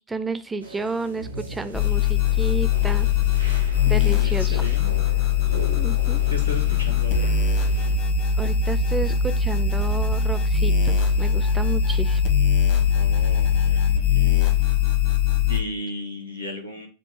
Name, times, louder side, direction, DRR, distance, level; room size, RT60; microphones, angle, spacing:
voice 1, 0.1-3.1 3.9-4.6 5.8-6.2 8.4-12.2, right 3 dB, 10° right, 11 dB, 0.4 m, -31 dB
sound 1, 0.6-8.0, right 2 dB, 85° right, 0.8 m, -39 dB
sound 2, 1.7-15.6, left 7 dB, 45° left, 1.0 m, -21 dB
voice 2, 4.1-4.9 6.3-7.3 12.9-14.4 15.5-16.9, equal, 90° left, 1 dB, 1.2 m, -35 dB
6.5 x 2.4 x 3.1 m, 0.32 s
figure-of-eight pair, 90°, 0 cm